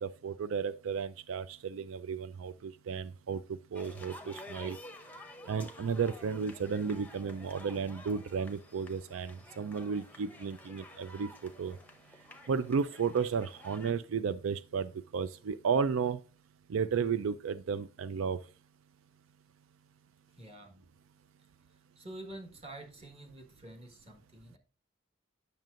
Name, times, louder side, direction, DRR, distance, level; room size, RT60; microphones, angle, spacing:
voice 1, 0.0-4.8 5.5-11.8 12.5-16.2 16.7-18.4, right 6 dB, 85° right, 0.4 m, -33 dB
sound 1, 3.7-13.9, left 1 dB, 10° left, 0.7 m, -51 dB
voice 2, 20.3-20.9 21.9-24.6, right 1 dB, 30° right, 1.5 m, -48 dB
9.0 x 6.5 x 2.5 m
head